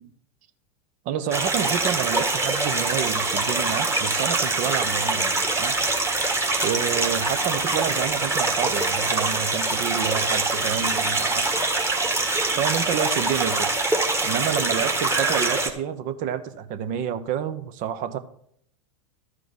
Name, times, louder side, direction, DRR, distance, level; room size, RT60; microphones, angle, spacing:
voice 1, 1.0-5.7 6.6-11.5 12.6-13.9 14.2-18.2, right 8 dB, 45° right, 0.9 m, -29 dB
sound 1, 1.3-15.7, right 2 dB, 15° right, 1.6 m, -24 dB
12.5 x 4.9 x 6.1 m
hypercardioid pair, 95°, 18 cm